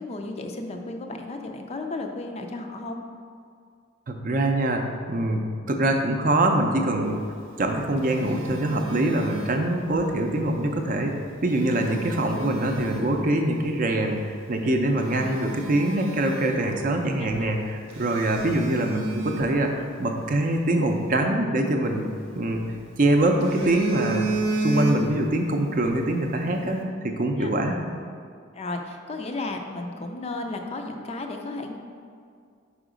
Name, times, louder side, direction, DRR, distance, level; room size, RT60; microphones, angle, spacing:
voice 1, 0.0-3.0 17.2-17.5 27.4-27.5 28.5-31.8, left 2 dB, 35° left, 4 dB, 0.4 m, -34 dB
voice 2, 4.1-4.8 5.1-7.2 7.6-11.1 11.4-22.1 22.3-22.6 23.0-24.3 24.6-27.8, right 1 dB, 45° right, 3 dB, 0.5 m, -24 dB
Telephone, 7.5-10.1 11.3-13.2 13.8-14.0 14.5-14.6 15.0-17.0 17.3-17.4 17.9-20.3 21.9-22.8 23.2-25.4 25.7-25.9, right 2 dB, 80° right, 0.7 m, -32 dB
5.0 x 4.6 x 5.0 m, 2.2 s
head